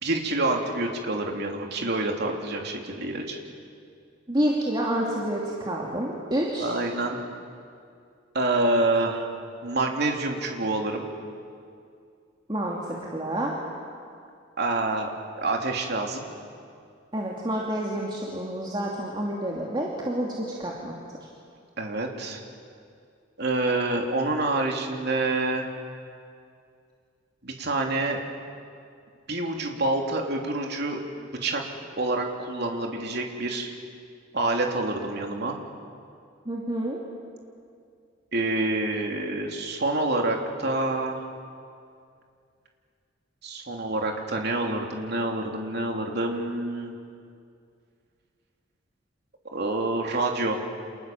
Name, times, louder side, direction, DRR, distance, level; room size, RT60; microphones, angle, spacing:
voice 1, 0.0-3.4 6.6-7.2 8.3-9.3 9.6-11.0 14.6-15.1 15.4-16.3 21.8-22.4 23.4-25.7 27.4-28.2 29.3-31.6 32.0-33.7 34.3-35.6 38.3-41.2 43.4-46.9 49.5-50.6, right 2 dB, 55° right, 2 dB, 3.2 m, -27 dB
voice 2, 4.3-6.7 12.5-13.5 17.1-21.0 36.5-37.0, right 1 dB, 25° right, -3 dB, 2.7 m, -28 dB
29.5 x 27.0 x 7.4 m, 2.3 s
head